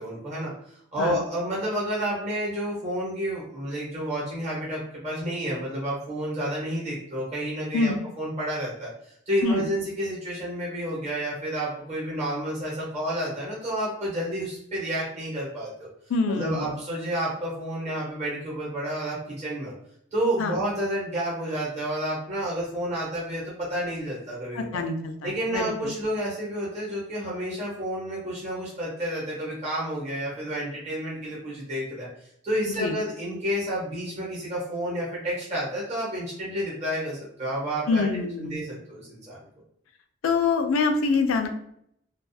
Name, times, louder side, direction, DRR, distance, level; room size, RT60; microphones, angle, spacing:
voice 1, 0.0-15.9 16.3-19.7 20.1-24.8 25.2-32.1 32.4-39.4, right 1 dB, 35° right, -6 dB, 1.0 m, -30 dB
voice 2, 16.1-16.7 20.4-20.6 24.6-25.9 32.8-33.0 37.9-38.6 40.2-41.5, left 4 dB, 85° left, 6 dB, 0.4 m, -25 dB
2.3 x 2.3 x 2.6 m, 0.71 s
head